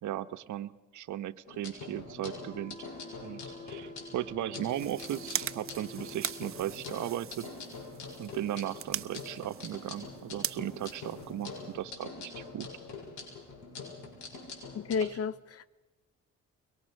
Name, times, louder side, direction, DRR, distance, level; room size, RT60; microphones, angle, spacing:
voice 1, 0.0-2.8 3.2-3.4 3.7-7.5 8.2-12.7 15.0-15.1, right 12 dB, 75° right, 1.1 m, -37 dB
sound 1, 1.5-15.0, left 4 dB, 80° left, 6.9 m, -45 dB
sound 2, 2.3-6.6, left 2 dB, 25° left, 5.0 m, -49 dB
sound 3, 4.6-11.9, right 9 dB, 45° right, 0.9 m, -41 dB
voice 2, 14.7-15.7, left 6 dB, 50° left, 1.1 m, -32 dB
23.5 x 21.5 x 6.5 m
cardioid pair, 90°, 30 cm